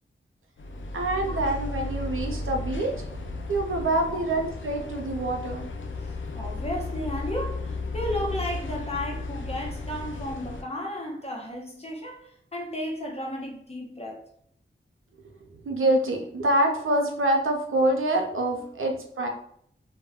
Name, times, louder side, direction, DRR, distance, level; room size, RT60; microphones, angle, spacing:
sound 1, 0.6-10.6, left 2 dB, 70° left, 0.4 m, -34 dB
voice 1, 0.9-2.9 3.5-5.7 15.6-19.3, right 1 dB, 80° right, 0.6 m, -26 dB
voice 2, 6.0-14.2, equal, 30° left, 0.8 m, -34 dB
2.2 x 2.2 x 3.4 m
wide cardioid pair, 55°, 21 cm